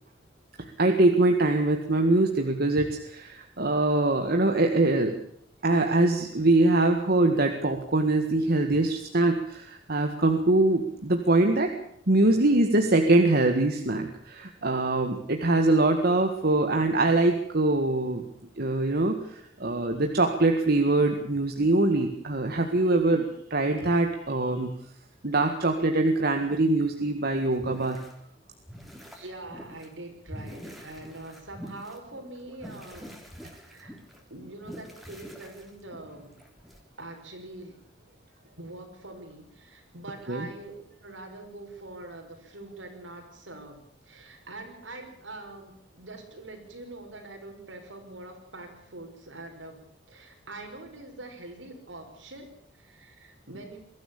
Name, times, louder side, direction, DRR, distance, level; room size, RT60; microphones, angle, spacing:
voice 1, 0.6-5.2 5.6-11.7 12.1-18.2 18.6-23.3 23.5-24.7 25.2-28.0 40.3-40.5, right 2 dB, 55° right, 4 dB, 1.9 m, -23 dB
sound 1, 27.5-28.2 28.6-29.9 30.3-36.8, equal, ahead, 3.5 m, -45 dB
voice 2, 29.1-33.2 33.5-34.0 34.3-36.4 37.0-37.8 38.6-49.8 50.1-53.8, right 2 dB, 85° right, 4 dB, 5.7 m, -44 dB
22.5 x 14.0 x 8.6 m, 0.68 s
head